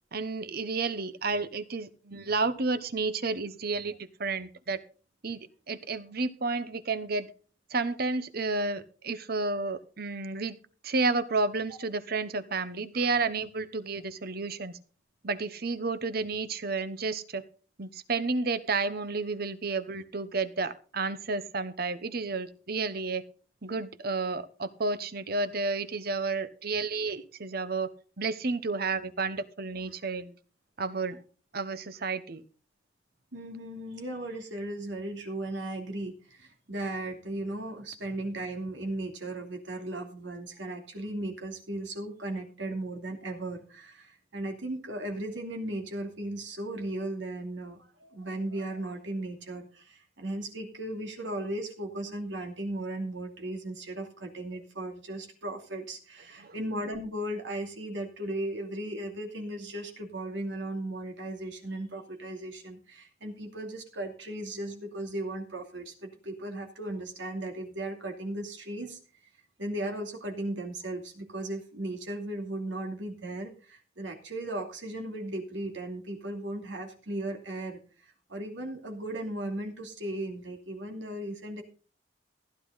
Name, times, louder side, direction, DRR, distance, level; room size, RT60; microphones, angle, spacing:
voice 1, 0.1-4.8 5.2-5.4 5.7-7.3 7.7-10.6 10.8-14.7 15.2-17.4 17.8-23.2 23.6-27.9 28.2-30.4 30.8-31.2 31.5-32.4 56.4-56.5, right 3 dB, 55° right, 14 dB, 1.0 m, -31 dB
voice 2, 33.3-69.0 69.6-81.6, right 1 dB, 80° right, 2 dB, 2.7 m, -36 dB
15.5 x 10.5 x 4.1 m, 0.39 s
head